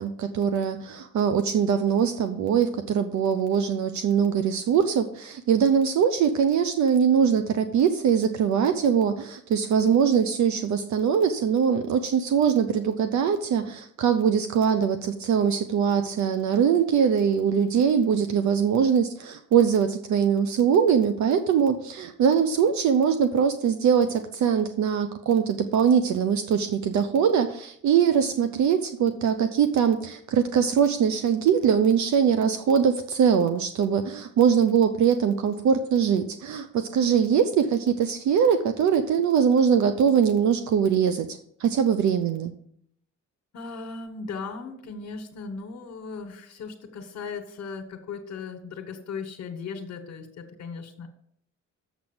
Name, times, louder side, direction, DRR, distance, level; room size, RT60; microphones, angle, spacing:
voice 1, 0.0-42.5, right 7 dB, 70° right, 9 dB, 0.8 m, -22 dB
voice 2, 43.5-51.1, left 5 dB, 65° left, 4 dB, 1.4 m, -37 dB
7.5 x 6.2 x 7.2 m, 0.68 s
cardioid pair, 90°, 30 cm